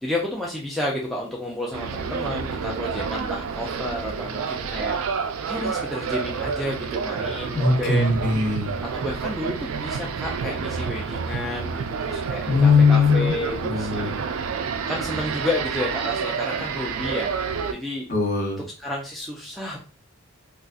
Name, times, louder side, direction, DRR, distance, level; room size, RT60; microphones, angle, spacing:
voice 1, 0.0-5.0 5.5-8.2 8.9-14.1 14.9-17.3 17.7-18.1 18.8-19.8, left 1 dB, ahead, -4 dB, 0.4 m, -31 dB
sound 1, 1.7-17.7, right 5 dB, 75° right, 0.4 m, -29 dB
voice 2, 7.5-8.7 12.4-13.3 13.6-14.1 18.1-18.6, left 4 dB, 40° left, -2 dB, 1.0 m, -20 dB
3.8 x 2.4 x 2.3 m, 0.36 s
head